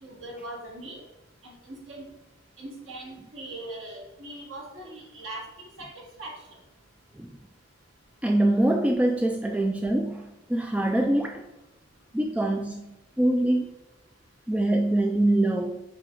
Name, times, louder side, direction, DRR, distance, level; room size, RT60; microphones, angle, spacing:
voice 1, 0.0-1.0 1.4-2.1 2.6-5.4 5.8-6.3, right 1 dB, 85° right, -2 dB, 1.7 m, -40 dB
voice 2, 8.2-11.4 12.1-12.9 13.2-13.7 14.5-15.8, right 1 dB, 5° right, 2 dB, 0.3 m, -24 dB
6.4 x 3.8 x 3.8 m, 0.97 s
head